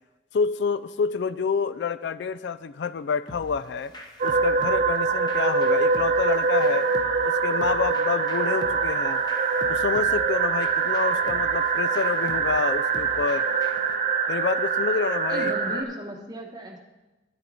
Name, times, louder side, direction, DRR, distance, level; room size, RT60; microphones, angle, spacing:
voice 1, 0.3-3.9 4.2-6.9 7.2-9.2 9.7-13.5 14.3-15.5, left 5 dB, 65° left, 15 dB, 0.3 m, -28 dB
sound 1, 3.3-13.9, equal, 25° left, 1.0 m, -45 dB
sound 2, 4.2-15.8, right 5 dB, 40° right, 0.8 m, -24 dB
voice 2, 15.3-16.8, equal, 20° right, 1 dB, 1.2 m, -36 dB
10.5 x 9.3 x 4.2 m, 1.1 s
head